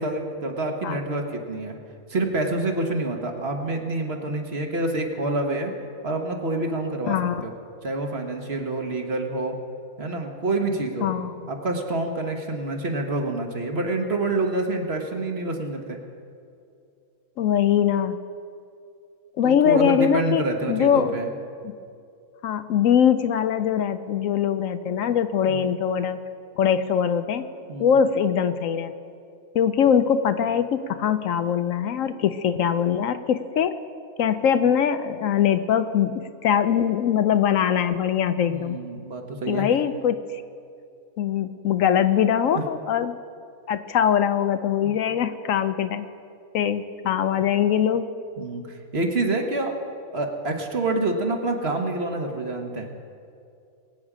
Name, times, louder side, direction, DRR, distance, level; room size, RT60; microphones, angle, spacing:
voice 1, 0.0-1.8 2.1-5.7 6.0-7.2 7.4-7.5 7.8-9.5 10.0-11.1 11.5-16.0 19.4-21.3 25.5-25.8 27.7-27.9 38.5-39.6 48.4-49.7 50.1-52.9, right 2 dB, 45° right, 3 dB, 1.5 m, -27 dB
voice 2, 7.1-7.4 11.0-11.3 17.4-18.2 19.4-21.1 21.6-21.7 22.4-26.2 26.6-27.4 27.8-28.9 29.5-33.7 34.2-38.8 39.5-40.4 41.2-43.1 43.7-46.1 46.5-48.1, left 8 dB, 70° left, 11 dB, 0.9 m, -22 dB
22.5 x 8.7 x 5.0 m, 2.5 s
omnidirectional pair, 1.5 m